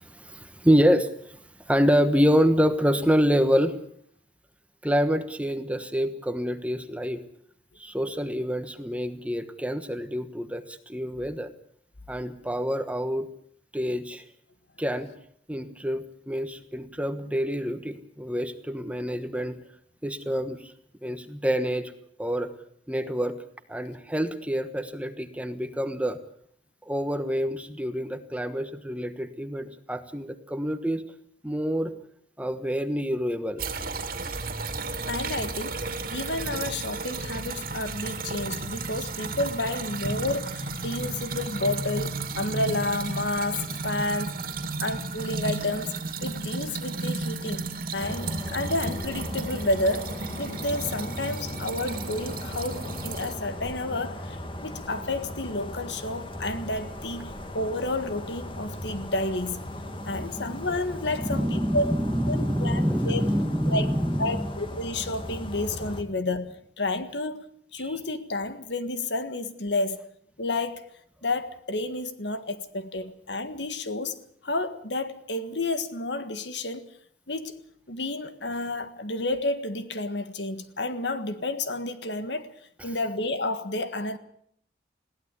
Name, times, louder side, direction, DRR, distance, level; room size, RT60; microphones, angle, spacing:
voice 1, 0.0-1.4 1.7-3.8 4.8-7.2 7.8-11.5 12.1-13.3 13.7-14.2 14.8-15.1 15.5-19.6 20.0-20.7 21.0-21.9 22.2-22.5 22.9-23.4 23.7-26.2 26.8-31.0 31.4-31.9 32.4-33.6 59.9-60.4 61.1-64.5 67.8-67.9, equal, 5° right, 1.2 m, -27 dB
sound 1, 33.6-53.3, right 3 dB, 50° right, 2.4 m, -33 dB
voice 2, 35.0-35.8 36.1-44.4 44.8-45.9 46.2-47.7 47.9-59.6 60.1-61.9 62.3-63.2 63.6-63.9 64.2-67.5 67.7-70.0 70.4-70.8 71.2-74.2 74.4-76.9 77.3-77.6 77.9-82.5 82.8-84.2, left 2 dB, 70° left, 1.7 m, -30 dB
sound 2, 48.0-66.0, left 1 dB, 25° left, 2.0 m, -37 dB
21.0 x 16.5 x 8.3 m
head